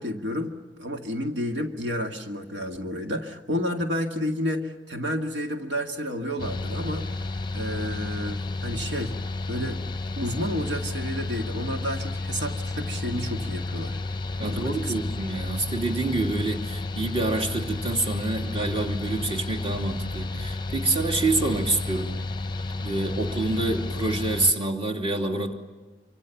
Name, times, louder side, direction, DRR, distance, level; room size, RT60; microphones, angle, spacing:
voice 1, 0.0-7.3 7.5-9.1 9.5-9.8 10.2-14.0 14.4-14.9, equal, 80° right, 3 dB, 2.1 m, -31 dB
Mechanical fan, 6.4-24.5, left 2 dB, 25° left, 0.8 m, -31 dB
voice 2, 14.4-22.1 22.8-25.5, right 2 dB, 35° right, 3 dB, 2.8 m, -27 dB
27.0 x 25.5 x 7.2 m, 1.2 s
head